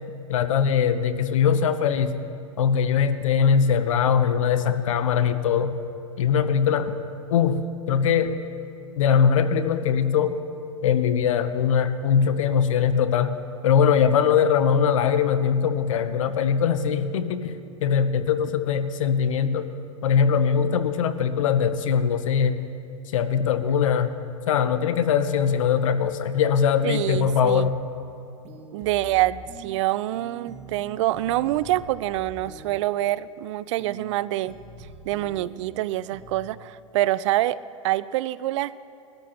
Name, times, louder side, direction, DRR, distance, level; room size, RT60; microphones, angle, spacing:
voice 1, 0.3-2.2 2.6-5.8 6.2-6.9 7.3-8.4 9.0-10.4 10.8-13.4 13.6-17.5 17.8-19.7 20.0-22.7 23.1-24.2 24.5-27.8, left 7 dB, 75° left, 11 dB, 0.8 m, -21 dB
voice 2, 26.8-27.7 28.7-34.6 35.1-37.6 37.8-38.9, right 15 dB, 60° right, 18 dB, 0.4 m, -26 dB
sound 1, 27.0-27.8 28.4-29.8 30.1-32.8 33.8-34.1 34.4-35.8 36.1-36.5, right 3 dB, 40° right, 1.6 m, -44 dB
21.0 x 13.0 x 3.0 m, 2.6 s
hypercardioid pair, 95°, 17 cm